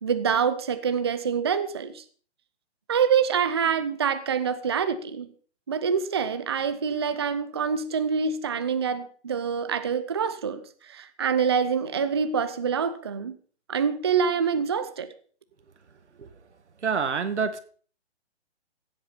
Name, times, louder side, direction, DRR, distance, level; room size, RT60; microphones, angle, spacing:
voice 1, 0.0-2.0 2.9-5.3 5.7-13.3 13.7-15.1, right 6 dB, 25° right, 11 dB, 0.6 m, -26 dB
voice 2, 16.8-17.6, right 5 dB, 90° right, 10 dB, 2.0 m, -26 dB
16.5 x 8.1 x 5.6 m, 0.43 s
hypercardioid pair, 170°, 34 cm